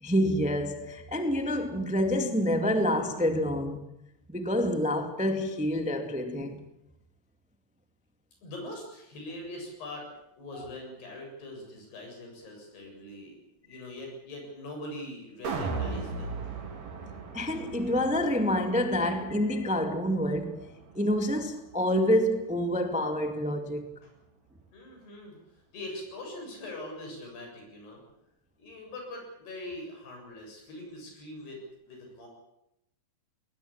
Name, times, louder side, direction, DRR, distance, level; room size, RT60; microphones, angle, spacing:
voice 1, 0.0-3.9 4.3-6.6 17.3-23.9, equal, 5° right, 0.6 m, -27 dB
voice 2, 8.4-10.1 10.4-13.3 13.6-16.4 20.9-21.0 24.0-24.1 24.7-28.0 28.6-31.6 31.9-32.3, left 1 dB, 80° left, 9.6 m, -42 dB
sound 1, 15.4-21.7 22.1-22.2, right 4 dB, 70° right, 5.5 m, -38 dB
21.5 x 19.5 x 8.6 m
omnidirectional pair, 4.6 m